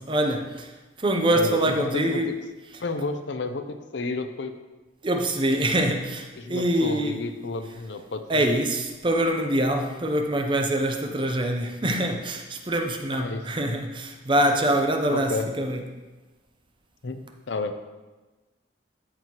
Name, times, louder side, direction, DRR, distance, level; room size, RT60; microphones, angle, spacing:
voice 1, 0.0-2.3 5.0-7.5 8.3-15.8, right 1 dB, 25° right, 0.6 m, -25 dB
voice 2, 1.3-2.3 2.8-4.5 6.4-8.5 13.2-13.5 15.1-15.5 17.0-17.8, left 3 dB, 75° left, 0.6 m, -31 dB
13.5 x 4.6 x 3.0 m
head